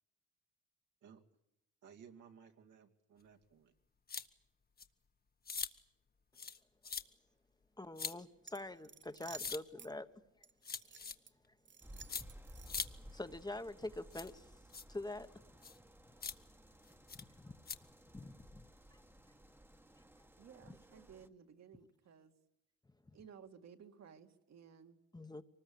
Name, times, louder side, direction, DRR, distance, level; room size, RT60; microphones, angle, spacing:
voice 1, 1.8-3.7, right 7 dB, 75° right, 2.4 m, -59 dB
sound 1, 4.1-4.3 4.8-4.9 5.5-5.7 6.4-6.6 6.8-7.0 8.0-8.1 9.4-9.6 10.6-11.1 12.1-12.2 12.7-12.9 14.1-14.3 14.7-14.8 15.6-15.8 16.2-16.3 17.1-17.2 17.7-17.8, left 5 dB, 30° left, 1.3 m, -41 dB
voice 2, 7.8-10.1 13.1-14.5 14.9-15.3 17.1-17.5 18.1-18.6 18.9-19.0 20.7-20.8 25.1-25.4, left 2 dB, 15° left, 1.1 m, -45 dB
sound 2, 8.4-9.9 10.4-11.3 11.6-13.1, right 6 dB, 40° right, 1.0 m, -55 dB
sound 3, 11.8-21.3, equal, 5° right, 1.3 m, -58 dB
voice 3, 20.4-22.3 23.1-25.0, right 7 dB, 60° right, 2.2 m, -57 dB
24.0 x 20.0 x 8.6 m
cardioid pair, 90°, 30 cm